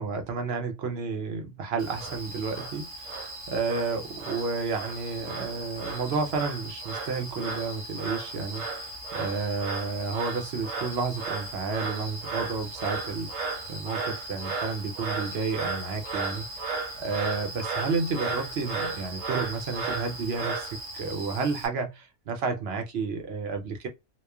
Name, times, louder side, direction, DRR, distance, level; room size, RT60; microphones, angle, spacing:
voice 1, 0.0-16.7 17.0-23.9, right 4 dB, 60° right, 0.8 m, -31 dB
Frog, 1.8-21.7, right 3 dB, 85° right, 1.3 m, -35 dB
3.0 x 2.1 x 2.2 m
omnidirectional pair, 1.3 m